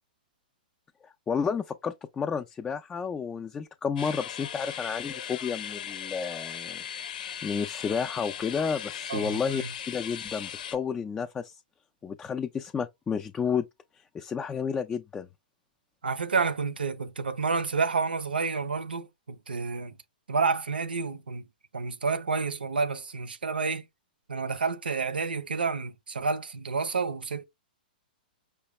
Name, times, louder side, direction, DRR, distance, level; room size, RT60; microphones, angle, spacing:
voice 1, 1.0-6.8 7.4-11.6 12.0-13.7 13.9-15.3, left 6 dB, 15° left, 0.3 m, -31 dB
sound 1, 4.0-10.8, left 9 dB, 60° left, 0.6 m, -38 dB
voice 2, 9.1-9.7 16.0-20.0 20.3-21.5 21.7-23.9 24.3-27.5, right 4 dB, 85° right, 0.6 m, -29 dB
5.1 x 2.2 x 3.0 m
hypercardioid pair, 120°, 5 cm